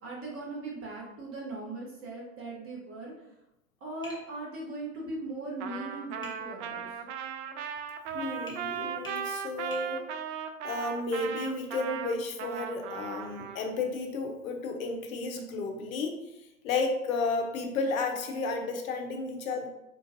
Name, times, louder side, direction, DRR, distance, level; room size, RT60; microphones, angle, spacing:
voice 1, 0.0-3.1 3.8-6.9, right 2 dB, 30° right, -3 dB, 1.2 m, -39 dB
Tap, 4.0-4.3 6.2-6.4 8.5-8.6 9.0-9.2 9.7-9.9, left 2 dB, 10° left, 0.7 m, -45 dB
Trumpet, 5.6-13.6, right 8 dB, 55° right, 0.4 m, -37 dB
voice 2, 8.1-10.1 10.6-16.2 16.6-19.7, left 3 dB, 70° left, 4 dB, 0.8 m, -32 dB
3.8 x 2.5 x 2.5 m, 0.89 s
figure-of-eight pair, 95°, 43 cm